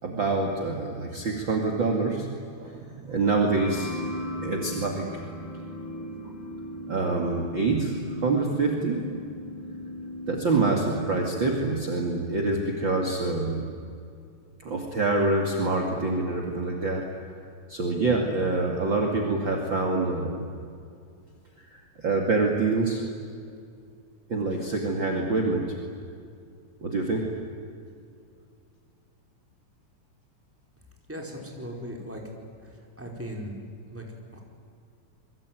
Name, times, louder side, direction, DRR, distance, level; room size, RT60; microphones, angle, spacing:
voice 1, 0.0-2.3 2.6-3.9 4.4-5.1 6.9-8.0 8.2-9.0 10.3-13.7 14.6-17.1 17.7-20.5 21.7-23.0 24.3-25.7 26.8-27.3, right 3 dB, 40° right, 0 dB, 2.8 m, -26 dB
sound 1, 3.6-13.1, left 1 dB, 75° left, 5.6 m, -38 dB
voice 2, 31.1-32.2 33.0-33.6 33.9-34.0 34.3-34.4, equal, 5° right, 0 dB, 4.3 m, -37 dB
27.5 x 23.5 x 9.3 m, 2.3 s
omnidirectional pair, 3.7 m